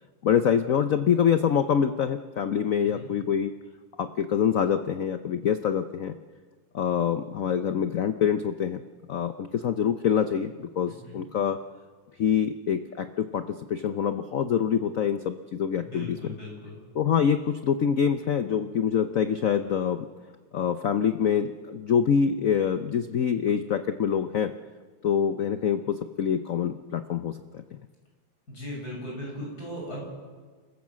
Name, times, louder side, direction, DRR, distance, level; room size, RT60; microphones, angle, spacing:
voice 1, 0.2-3.5 4.0-6.1 6.7-8.8 9.1-11.6 12.2-16.3 16.9-20.1 20.5-24.5 25.0-27.8, left 8 dB, 85° left, 10 dB, 0.7 m, -25 dB
voice 2, 2.8-3.1 11.0-11.2 15.8-16.8 28.5-30.0, equal, 40° left, -2 dB, 7.6 m, -38 dB
28.0 x 14.5 x 7.4 m, 1.5 s
omnidirectional pair, 2.4 m